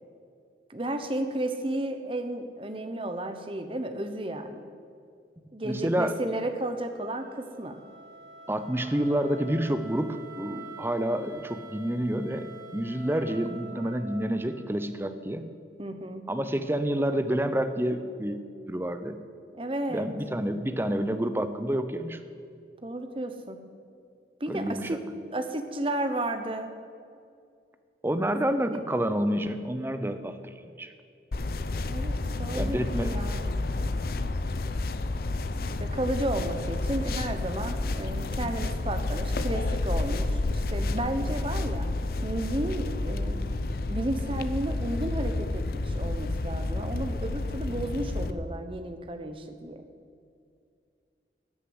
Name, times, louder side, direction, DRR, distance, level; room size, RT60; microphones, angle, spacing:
voice 1, 0.7-4.7 5.5-7.8 15.8-16.2 19.5-20.1 22.8-23.6 24.4-25.0 25.3-26.7 28.7-28.8 29.8-30.2 31.9-33.4 35.6-41.9 42.2-43.4 43.8-49.8, right 1 dB, 30° right, 7 dB, 0.9 m, -33 dB
voice 2, 5.6-6.2 8.5-15.5 16.3-19.2 19.9-22.2 24.5-25.0 28.0-30.9 32.5-33.2 38.5-38.6, right 1 dB, 10° right, 10 dB, 0.6 m, -29 dB
Wind instrument woodwind instrument, 6.9-14.9, right 2 dB, 75° right, 3.2 m, -47 dB
sound 1, 31.3-48.3, left 2 dB, 55° left, 0.6 m, -30 dB
14.0 x 6.7 x 9.6 m, 2.3 s
head